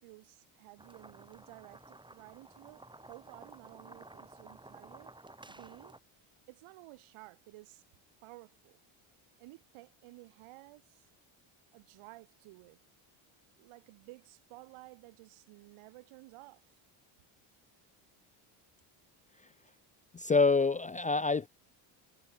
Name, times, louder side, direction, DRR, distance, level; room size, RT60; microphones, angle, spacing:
voice 1, 0.0-5.1 5.5-5.9 6.5-7.8 8.2-8.8 9.4-11.1 11.7-12.8 13.6-16.8, right 21 dB, 80° right, 3.9 m, -54 dB
sound 1, 0.8-6.0, right 2 dB, 10° right, 2.7 m, -54 dB
voice 2, 20.1-21.5, left 4 dB, 15° left, 0.4 m, -26 dB
cardioid pair, 105°, 49 cm